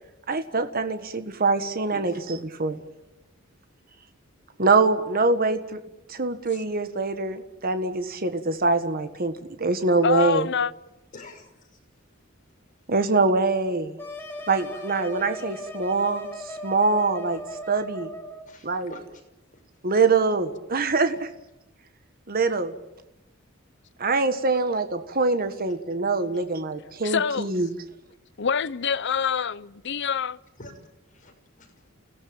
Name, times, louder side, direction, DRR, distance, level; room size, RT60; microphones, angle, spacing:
voice 1, 0.3-2.1 2.6-2.8 4.6-5.8 6.1-9.3 9.6-10.4 12.9-13.9 14.5-16.3 16.6-17.4 17.7-18.1 18.6-18.9 19.8-21.2 22.3-22.7 24.0-27.7, right 3 dB, 45° right, 1.6 m, -24 dB
voice 2, 1.9-2.2 11.1-11.8 18.5-19.2 19.5-19.6 30.6-30.7 31.1-31.9, left 2 dB, 40° left, 6.1 m, -46 dB
voice 3, 10.0-10.7 27.0-27.6 28.4-30.4, left 6 dB, 60° left, 0.8 m, -25 dB
sound 1, 14.0-18.5, equal, 10° left, 5.3 m, -37 dB
29.5 x 17.5 x 8.9 m
head